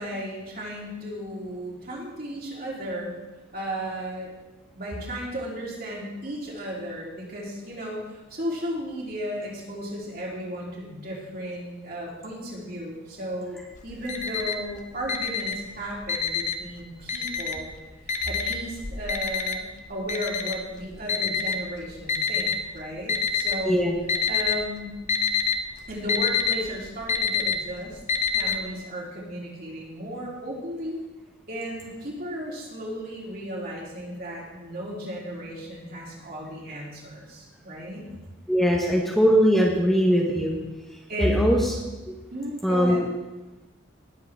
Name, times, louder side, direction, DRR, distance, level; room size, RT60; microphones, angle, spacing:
voice 1, 0.0-3.2 3.5-4.3 4.7-13.6 13.8-17.7 18.0-23.8 24.3-25.0 25.9-28.0 28.3-31.0 31.5-38.0 41.1-41.5 42.3-43.0, equal, 45° right, -4 dB, 3.2 m, -35 dB
Alarm, 13.8-14.7 15.0-16.7 17.1-17.7 18.1-22.6 23.1-23.7 24.0-24.6 24.9-28.6, left 6 dB, 35° left, 0.8 m, -26 dB
voice 2, 23.7-24.0 38.5-40.6 41.2-41.6 42.6-43.0, equal, ahead, -3 dB, 1.1 m, -20 dB
19.0 x 7.7 x 3.6 m, 1.1 s
head